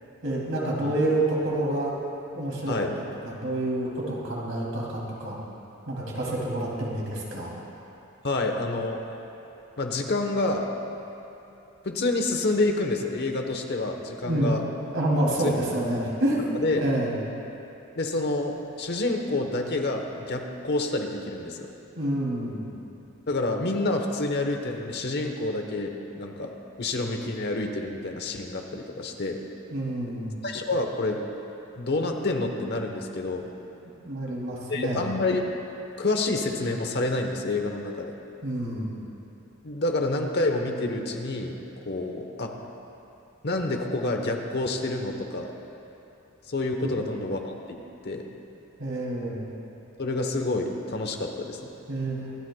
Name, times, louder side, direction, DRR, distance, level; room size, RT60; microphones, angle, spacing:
voice 1, 0.2-2.0 2.3-2.7 3.2-5.4 5.9-7.6 14.2-14.6 14.9-17.1 22.0-22.7 29.7-30.4 34.0-35.0 38.4-38.9 48.8-49.5 51.9-52.2, right 1 dB, 70° right, -4 dB, 2.8 m, -28 dB
voice 2, 8.2-9.0 9.8-10.7 11.8-14.6 15.4-15.5 16.6-16.8 18.0-21.7 23.3-29.4 30.4-31.2 31.8-33.5 34.7-35.4 36.0-38.1 39.6-41.5 41.8-42.5 43.4-45.5 46.5-48.3 50.0-51.6, left 2 dB, 50° left, 3 dB, 1.0 m, -28 dB
25.0 x 10.5 x 2.3 m, 3.0 s
head